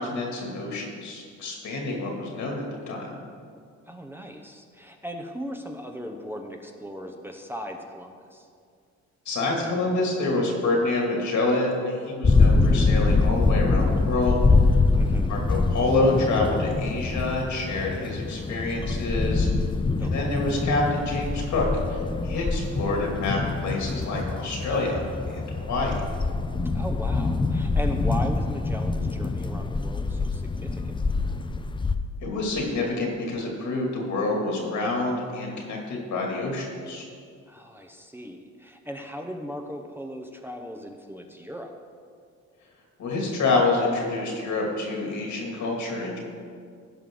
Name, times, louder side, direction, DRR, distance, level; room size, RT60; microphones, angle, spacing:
voice 1, 0.0-3.1 9.3-14.4 14.7-14.8 15.3-19.5 20.0-26.0 32.2-37.0 43.0-46.2, left 2 dB, 70° left, -1 dB, 2.6 m, -27 dB
voice 2, 3.9-8.5 15.0-15.3 20.0-20.4 26.7-30.9 37.5-41.7, equal, 5° right, 2 dB, 0.8 m, -37 dB
sound 1, 12.2-31.9, left 3 dB, 15° left, 0.5 m, -24 dB
16.5 x 5.5 x 3.8 m, 2.2 s
cardioid pair, 90°, 30 cm